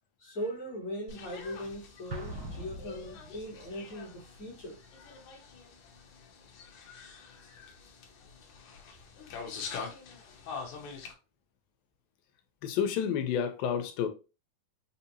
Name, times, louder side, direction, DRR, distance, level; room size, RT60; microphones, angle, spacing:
voice 1, 0.2-4.8, equal, 45° left, 1.2 m, -39 dB
sound 1, 1.1-11.1, left 5 dB, 70° left, 1.9 m, -45 dB
Explosion, 2.1-3.7, right 1 dB, 55° right, 1.0 m, -42 dB
voice 2, 12.6-14.1, left 8 dB, 85° left, 2.3 m, -30 dB
5.8 x 2.8 x 2.7 m
omnidirectional pair, 4.1 m